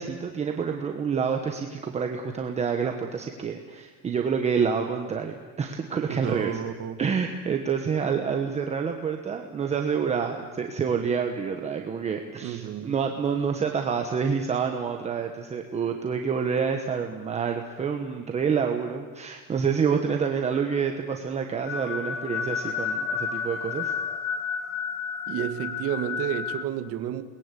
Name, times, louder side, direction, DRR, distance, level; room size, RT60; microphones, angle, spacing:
voice 1, 0.0-6.6 7.0-23.9, right 6 dB, 15° right, 3 dB, 1.3 m, -28 dB
voice 2, 6.1-7.0 12.4-12.9 25.3-27.2, right 11 dB, 40° right, 8 dB, 1.7 m, -31 dB
sound 1, 21.7-26.6, left 6 dB, 45° left, 2.2 m, -31 dB
29.0 x 21.0 x 8.4 m, 1.4 s
cardioid pair, 175°, 37 cm